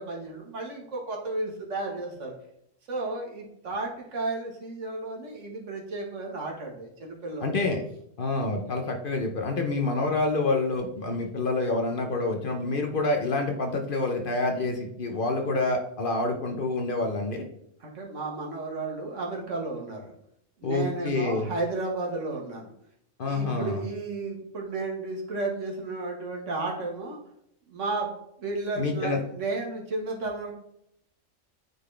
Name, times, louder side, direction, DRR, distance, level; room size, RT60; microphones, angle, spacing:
voice 1, 0.0-2.3 2.9-7.6 17.8-20.1 20.6-22.7 23.2-27.2 27.7-28.1 28.4-30.5, right 3 dB, 70° right, -1 dB, 1.7 m, -33 dB
voice 2, 7.4-7.8 8.2-17.4 20.6-21.5 23.2-23.8 28.8-29.2, left 2 dB, 50° left, 3 dB, 0.8 m, -27 dB
9.0 x 4.0 x 3.3 m, 0.73 s
omnidirectional pair, 1.3 m